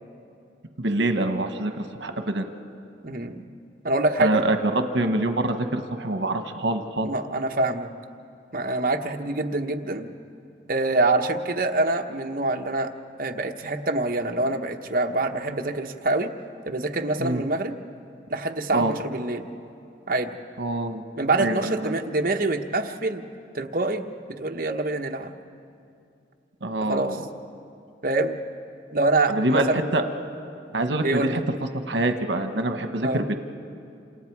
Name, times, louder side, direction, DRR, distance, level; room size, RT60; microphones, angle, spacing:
voice 1, 0.8-2.4 4.2-7.1 17.2-17.4 18.7-18.9 20.6-21.0 21.4-22.0 26.6-27.2 29.3-30.0 30.7-31.4 31.9-33.3, right 2 dB, 75° right, 6 dB, 1.3 m, -25 dB
voice 2, 3.0-3.4 3.8-4.4 7.0-7.9 8.5-10.1 10.7-12.9 13.2-16.3 16.7-17.8 18.3-19.5 20.1-20.3 21.2-23.3 23.5-24.0 24.4-25.3 26.9-27.2 28.0-28.4 28.9-29.8 31.0-31.4 33.0-33.2, right 2 dB, 50° right, 4 dB, 1.1 m, -25 dB
28.0 x 27.5 x 4.7 m, 2.6 s
head